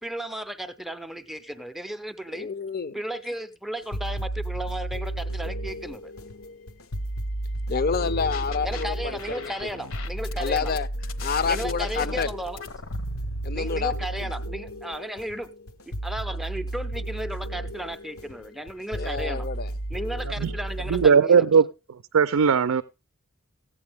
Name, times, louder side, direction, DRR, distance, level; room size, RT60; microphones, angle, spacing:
voice 1, 0.0-2.5 2.9-6.1 8.6-10.7 11.5-12.6 13.5-15.5 15.9-19.5 19.9-21.4, right 1 dB, ahead, 0.5 m, -34 dB
voice 2, 2.3-3.0 7.7-9.5 10.4-10.9 11.2-12.3 13.4-14.3 18.9-19.7, left 5 dB, 45° left, 0.6 m, -28 dB
sound 1, 3.8-21.1, right 1 dB, 90° left, 1.0 m, -33 dB
sound 2, 8.0-8.8 9.2-13.6, left 5 dB, 65° left, 1.0 m, -40 dB
voice 3, 20.9-21.7 22.1-22.8, right 6 dB, 80° right, 0.4 m, -18 dB
15.0 x 8.8 x 3.4 m
head